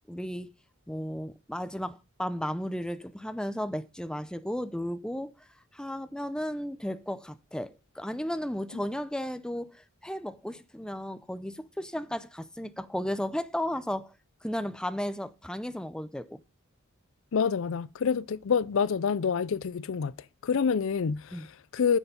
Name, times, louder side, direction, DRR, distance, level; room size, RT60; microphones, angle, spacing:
voice 1, 0.1-0.5 0.9-5.5 5.7-14.1 14.4-16.4 21.3-21.5, equal, 5° left, 0.5 m, -34 dB
voice 2, 17.3-20.1 20.4-22.0, left 6 dB, 70° left, 0.5 m, -27 dB
9.8 x 6.9 x 5.3 m
head